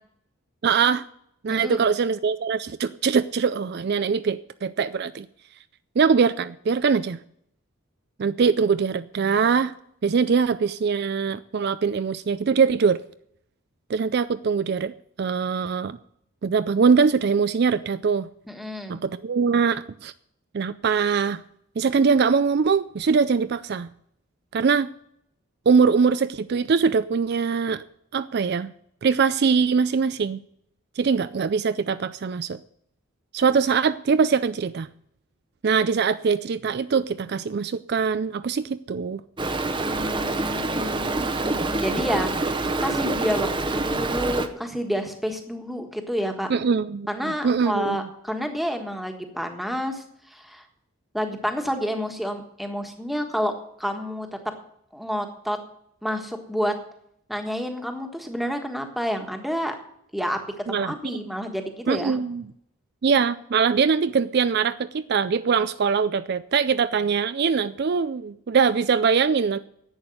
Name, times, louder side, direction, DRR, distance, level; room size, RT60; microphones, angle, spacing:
voice 1, 0.6-1.0 1.4-5.3 6.0-7.2 8.2-9.7 10.0-13.0 13.9-16.0 16.4-18.3 18.9-20.1 20.5-21.4 21.8-23.9 24.5-24.9 25.7-27.8 28.1-28.7 29.0-30.4 31.0-32.6 33.3-34.9 35.6-39.2 46.5-48.1 60.7-61.3 61.9-62.4 63.0-69.6, right 5 dB, 50° right, 13 dB, 0.4 m, -22 dB
voice 2, 1.5-1.9 18.5-19.0 39.8-46.5 47.1-50.6 51.1-53.5 53.8-54.3 54.9-55.6 56.0-56.7 57.3-59.8 60.1-62.2, equal, ahead, 4 dB, 1.5 m, -29 dB
Stream, 39.4-44.5, right 2 dB, 20° right, 0.8 m, -26 dB
11.0 x 8.8 x 7.8 m, 0.71 s
head